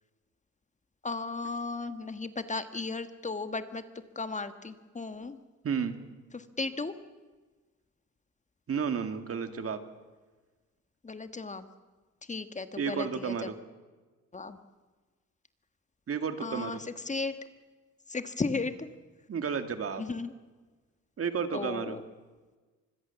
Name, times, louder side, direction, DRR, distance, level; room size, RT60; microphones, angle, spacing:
voice 1, 1.0-3.8 4.1-5.4 6.3-6.9 11.0-11.6 12.2-13.5 14.3-14.6 16.4-17.3 18.1-18.9 20.0-20.3 21.5-22.0, left 3 dB, 25° left, 10 dB, 1.5 m, -35 dB
voice 2, 5.6-5.9 8.7-9.8 12.8-13.5 16.1-16.8 19.3-20.0 21.2-22.0, right 6 dB, 50° right, 8 dB, 2.2 m, -32 dB
25.5 x 21.0 x 7.1 m, 1.3 s
cardioid pair, 90°, 30 cm